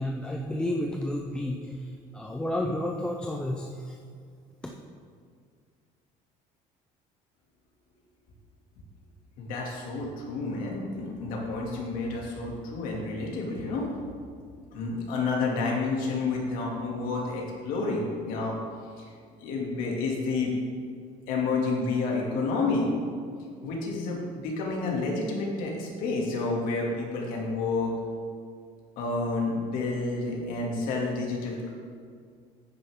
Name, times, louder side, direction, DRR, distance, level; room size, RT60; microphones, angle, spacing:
voice 1, 0.0-4.0 4.6-4.7, left 1 dB, 5° left, 0 dB, 0.5 m, -31 dB
voice 2, 9.4-13.9 14.7-18.6 19.0-19.1 19.4-20.5 21.3-22.9 23.6-27.9 29.0-31.7, left 3 dB, 70° left, -2 dB, 2.4 m, -30 dB
10.0 x 9.5 x 3.6 m, 2.1 s
cardioid pair, 165°, 15 cm